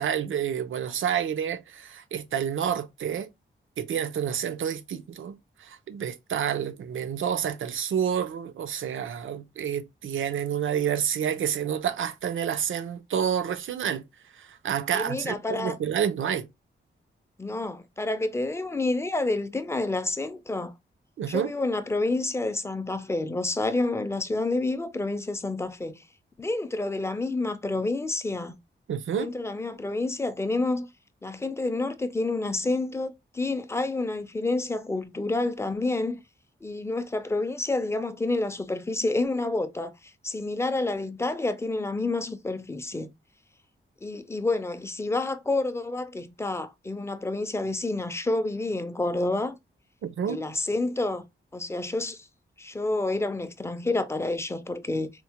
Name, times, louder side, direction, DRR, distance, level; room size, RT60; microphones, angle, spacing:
voice 1, 0.0-3.3 3.8-14.0 14.4-16.5 21.2-21.5 28.9-29.3 50.0-50.4, right 8 dB, 85° right, 0.5 m, -29 dB
voice 2, 14.9-15.8 17.4-20.7 21.3-26.0 26.4-28.6 29.2-30.9 31.2-36.2 36.6-43.1 44.0-49.6 50.3-51.2 51.5-52.3 52.6-55.1, left 2 dB, 15° left, 0.3 m, -29 dB
4.3 x 2.1 x 2.8 m
wide cardioid pair, 170°, 20 cm